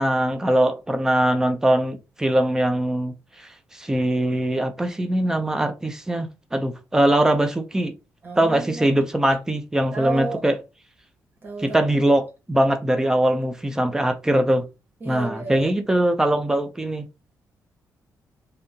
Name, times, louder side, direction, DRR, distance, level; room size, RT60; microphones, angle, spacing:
voice 1, 0.0-7.9 8.4-10.6 11.6-14.7 15.1-17.0, right 1 dB, 10° right, 0.4 m, -22 dB
voice 2, 8.2-8.9 9.9-10.4 11.4-12.2 15.0-15.7, right 3 dB, 30° right, 1.0 m, -32 dB
3.5 x 2.7 x 2.7 m
wide cardioid pair, 180°, 7 cm